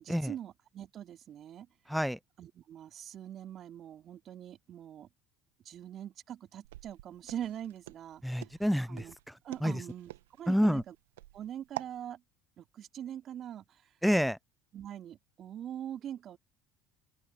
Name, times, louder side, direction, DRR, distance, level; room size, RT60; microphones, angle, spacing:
voice 1, 0.0-1.7 2.4-5.1 5.6-8.2 8.9-9.1 9.4-10.1 10.4-10.9 11.3-12.2 12.6-13.8 14.7-16.4, right 10 dB, 50° right, 4.0 m, -43 dB
Walk footsteps, 6.6-12.0, right 16 dB, 80° right, 1.5 m, -46 dB
voice 2, 8.2-9.0 9.6-9.8 10.5-10.8 14.0-14.4, equal, ahead, 0.6 m, -28 dB
open air
hypercardioid pair, 65°, 0 cm